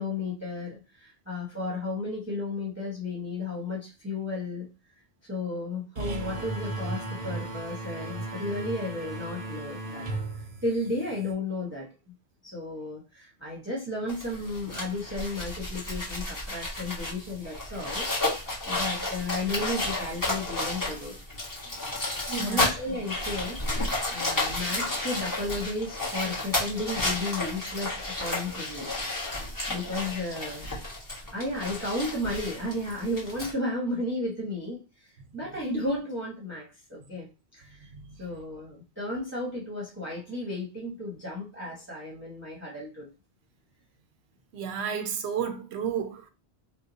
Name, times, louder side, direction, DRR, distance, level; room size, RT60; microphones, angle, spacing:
voice 1, 0.0-4.7 5.3-10.0 10.3-11.9 12.4-18.1 18.6-21.2 21.6-21.7 22.4-28.9 29.7-30.7 31.3-37.9 38.2-43.1, left 2 dB, 10° right, 0.9 m, -33 dB
sound 1, 6.0-11.3, right 2 dB, 50° right, 0.7 m, -36 dB
sound 2, 14.1-33.5, left 2 dB, 20° left, 1.1 m, -32 dB
voice 2, 22.2-22.7 37.8-38.2 44.5-46.3, right 7 dB, 85° right, 0.9 m, -32 dB
3.0 x 2.2 x 3.8 m
omnidirectional pair, 1.1 m